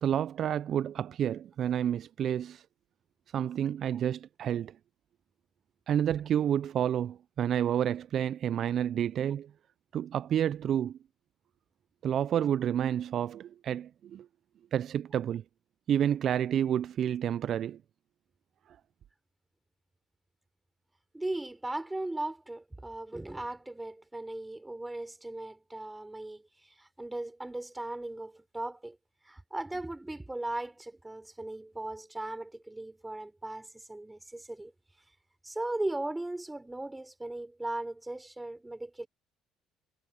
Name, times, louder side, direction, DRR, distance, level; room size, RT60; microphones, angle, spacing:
voice 1, 0.0-2.6 3.3-4.8 5.9-9.5 9.9-11.0 12.0-14.3 14.7-15.4 15.9-17.8, right 9 dB, 55° right, 0.8 m, -29 dB
voice 2, 21.1-29.0 29.2-34.7 35.4-39.1, right 2 dB, 10° right, 4.4 m, -38 dB
hypercardioid pair, 60°, 0 cm